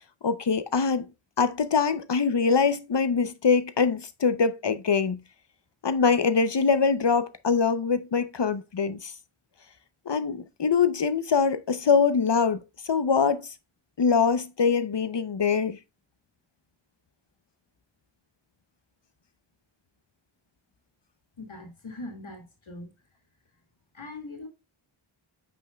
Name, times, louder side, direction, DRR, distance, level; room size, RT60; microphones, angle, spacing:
voice 1, 0.2-1.1 1.4-5.2 5.8-9.1 10.1-13.5 14.0-15.8, left 5 dB, 60° left, 0.7 m, -23 dB
voice 2, 21.4-23.2 23.5-23.6 23.9-24.5, left 2 dB, 75° left, 2.2 m, -41 dB
8.5 x 5.4 x 2.3 m
wide cardioid pair, 55°, 48 cm